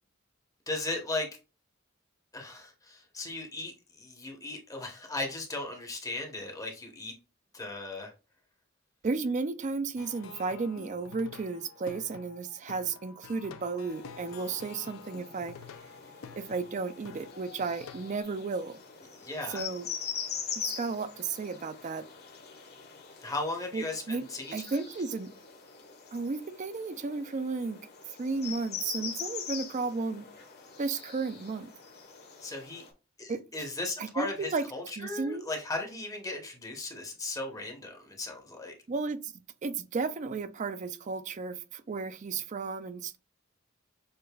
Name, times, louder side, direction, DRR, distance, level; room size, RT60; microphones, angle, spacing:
voice 1, 0.7-1.3 2.3-7.1 7.5-8.1 19.2-19.6 23.2-24.8 32.4-32.8 33.2-38.7, left 2 dB, 15° left, 0.8 m, -37 dB
voice 2, 9.0-15.5 16.4-18.8 19.5-19.9 20.6-22.0 23.7-24.2 24.5-25.3 26.1-27.9 28.2-30.3 30.8-31.7 33.3-33.4 34.0-34.6 35.0-35.5 38.9-39.3 39.6-43.2, right 4 dB, 35° right, 0.4 m, -33 dB
Plucked string instrument, 10.0-18.2, left 6 dB, 75° left, 0.5 m, -49 dB
sound 1, 13.9-32.9, left 7 dB, 50° left, 1.0 m, -43 dB
6.6 x 2.5 x 2.2 m
head